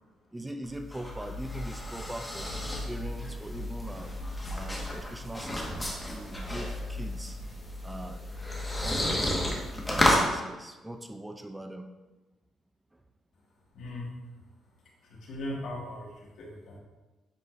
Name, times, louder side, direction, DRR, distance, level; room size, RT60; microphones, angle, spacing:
voice 1, 0.3-2.5 2.8-4.2 4.5-7.4 7.8-8.3 8.8-11.9 12.9-13.0, right 1 dB, 10° right, 6 dB, 0.5 m, -41 dB
sound 1, 0.6-10.3, left 1 dB, 15° left, 1.6 m, -32 dB
voice 2, 13.7-14.1 15.0-16.8, left 1 dB, 70° left, -3 dB, 2.1 m, -39 dB
9.8 x 5.0 x 2.6 m, 1.1 s
cardioid pair, 90°, 0 cm